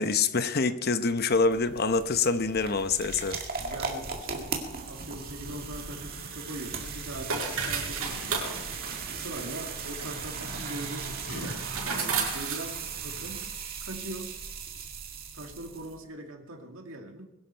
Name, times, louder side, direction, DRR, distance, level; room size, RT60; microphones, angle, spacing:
voice 1, 0.0-3.4, left 4 dB, 45° left, 10 dB, 0.8 m, -26 dB
sound 1, 1.1-16.0, right 5 dB, 40° right, 2.1 m, -38 dB
voice 2, 3.5-8.5 9.1-13.5 13.8-14.4 15.3-17.2, right 1 dB, 65° right, 2 dB, 2.3 m, -41 dB
sound 2, 5.8-13.4, right 4 dB, 85° right, 5.9 m, -36 dB
Yell, 7.4-12.9, equal, 65° left, 3.6 m, -49 dB
21.5 x 11.5 x 4.5 m, 0.92 s
head